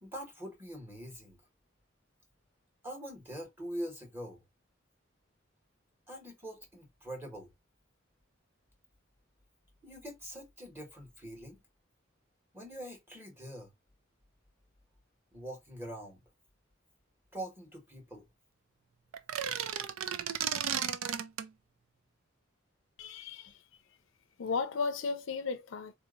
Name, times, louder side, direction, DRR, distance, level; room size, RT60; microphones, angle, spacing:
voice 1, 0.0-1.4 2.8-4.4 6.1-7.5 9.8-11.6 12.5-13.7 15.3-16.2 17.3-18.3, equal, 10° right, 1.4 m, -43 dB
sound 1, 19.1-21.5, right 8 dB, 85° right, 0.5 m, -34 dB
voice 2, 23.0-23.6 24.4-25.9, left 4 dB, 65° left, 0.5 m, -35 dB
4.1 x 2.8 x 2.4 m
head